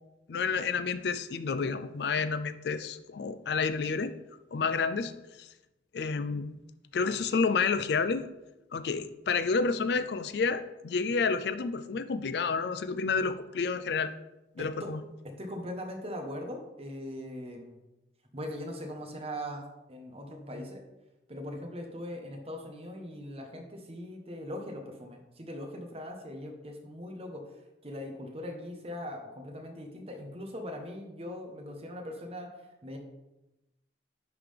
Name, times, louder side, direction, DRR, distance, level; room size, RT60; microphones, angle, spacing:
voice 1, 0.3-4.1 4.5-5.1 5.4-5.5 5.9-6.6 6.9-8.2 8.7-14.1 14.6-15.0, left 5 dB, 65° left, 12 dB, 0.4 m, -30 dB
voice 2, 15.2-17.8 18.3-20.8 21.3-27.4 27.8-32.5 32.8-33.0, left 1 dB, 35° right, 3 dB, 1.0 m, -40 dB
10.5 x 3.8 x 3.3 m, 0.97 s
head